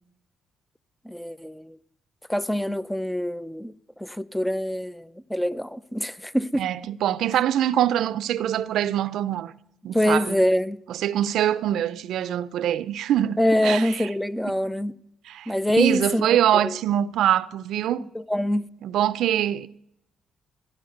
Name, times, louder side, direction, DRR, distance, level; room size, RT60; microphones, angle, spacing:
voice 1, 1.1-1.8 2.3-3.7 4.0-6.7 9.9-10.8 13.4-15.0 15.5-16.4 16.6-16.8 18.1-18.7, equal, 5° left, 0.5 m, -25 dB
voice 2, 6.6-9.5 9.8-10.4 10.9-14.1 14.5-14.6 15.3-18.1 18.8-19.7, right 11 dB, 80° right, 0.5 m, -24 dB
16.0 x 11.0 x 7.9 m
cardioid pair, 90°, 0 cm